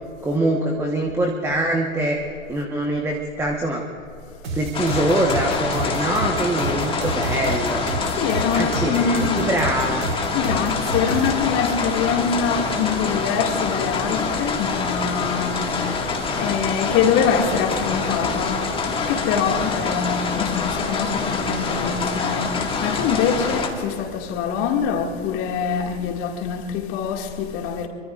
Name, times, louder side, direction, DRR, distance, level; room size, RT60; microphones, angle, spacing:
voice 1, 0.2-2.2 2.5-3.9 4.5-7.9 8.5-10.1, right 1 dB, 5° right, 1.2 m, -24 dB
sound 1, 4.4-11.3, right 2 dB, 80° right, 4.2 m, -29 dB
sound 2, 4.7-23.7, left 4 dB, 15° left, 1.9 m, -25 dB
voice 2, 8.2-9.5 10.3-27.9, left 7 dB, 35° left, 2.2 m, -24 dB
24.0 x 24.0 x 2.5 m
hypercardioid pair, 115°, 37 cm